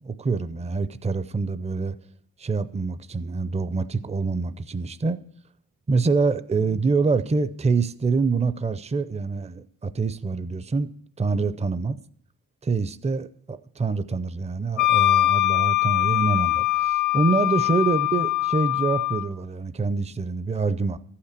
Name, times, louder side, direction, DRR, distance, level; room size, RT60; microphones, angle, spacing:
voice 1, 0.0-1.9 2.4-5.2 5.9-10.9 11.2-12.0 12.6-21.0, right 4 dB, 20° right, 0.4 m, -25 dB
Wind instrument woodwind instrument, 14.8-19.3, left 17 dB, 55° left, 0.7 m, -22 dB
13.5 x 5.8 x 6.7 m
wide cardioid pair, 80°, 35 cm